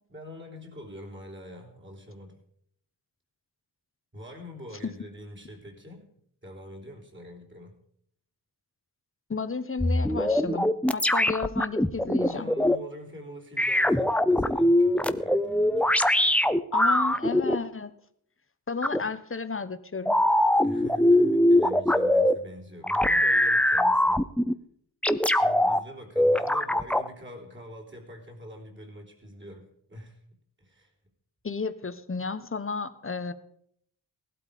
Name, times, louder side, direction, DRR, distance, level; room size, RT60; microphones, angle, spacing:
voice 1, 0.1-2.4 4.1-6.1 6.4-7.7 12.1-16.0 20.6-24.2 25.3-30.2 30.6-30.9, left 1 dB, 25° right, -1 dB, 3.5 m, -45 dB
voice 2, 9.3-12.5 16.7-17.9 18.7-20.2 31.4-33.3, left 4 dB, 30° left, 12 dB, 1.0 m, -32 dB
sound 1, 9.8-12.8 13.6-17.6 18.8-19.0 20.1-22.3 22.8-24.5 25.0-25.8 26.2-27.1, left 1 dB, 5° left, 0.5 m, -22 dB
18.0 x 12.0 x 5.2 m, 0.68 s
wide cardioid pair, 130°, 43 cm